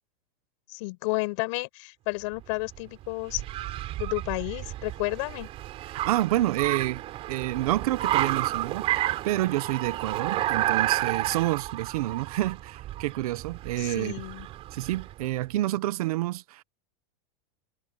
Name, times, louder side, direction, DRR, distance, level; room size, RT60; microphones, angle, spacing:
voice 1, 0.7-3.5 4.0-5.5 13.8-14.5, left 26 dB, 50° left, 5.9 m, -31 dB
Car, 2.3-15.2, right 14 dB, 30° right, 3.5 m, -31 dB
voice 2, 6.1-7.0 7.3-14.1 14.7-16.6, right 16 dB, 65° right, 0.9 m, -28 dB
supercardioid pair, 165°, 20 cm